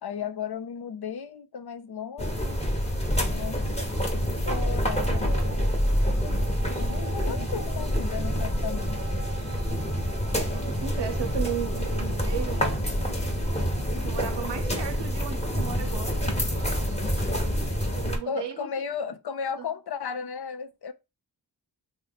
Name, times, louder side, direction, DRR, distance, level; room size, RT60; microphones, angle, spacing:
voice 1, 0.0-2.6 3.3-3.8 4.4-5.7 6.0-9.0 18.2-20.9, left 7 dB, 65° left, 0.6 m, -35 dB
sound 1, 2.2-18.2, equal, 15° left, 1.1 m, -27 dB
sound 2, 4.9-17.1, right 4 dB, 20° right, 0.9 m, -45 dB
voice 2, 10.6-13.3 14.0-16.2 17.9-18.8 19.6-19.7, right 8 dB, 80° right, 0.6 m, -35 dB
3.0 x 2.1 x 3.9 m
cardioid pair, 40°, 42 cm